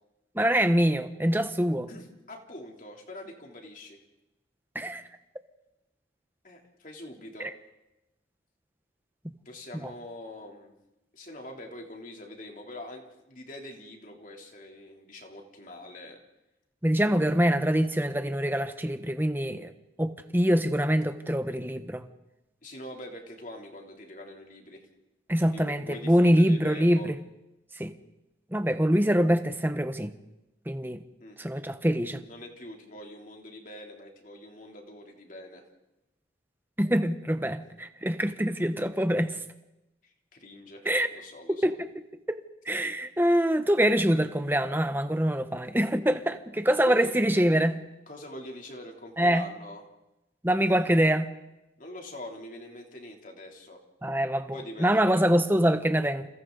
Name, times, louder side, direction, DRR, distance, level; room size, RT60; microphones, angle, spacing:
voice 1, 0.3-1.9 4.7-5.0 9.8-9.9 16.8-19.7 20.0-22.0 25.3-27.1 27.8-27.9 28.5-30.1 30.7-31.0 31.4-32.2 36.8-39.4 40.9-41.1 41.6-41.7 42.3-42.4 42.7-47.8 49.2-49.4 50.4-51.3 54.0-56.3, equal, 10° right, 1.1 m, -24 dB
voice 2, 1.9-4.0 6.4-7.5 9.4-10.7 11.1-16.2 17.0-17.3 22.6-24.8 25.4-27.1 31.2-31.4 32.1-35.6 40.0-41.7 46.8-47.2 48.1-49.8 50.7-50.9 51.8-53.8 54.5-55.2, left 1 dB, 45° left, 3.3 m, -44 dB
30.0 x 28.5 x 4.0 m
head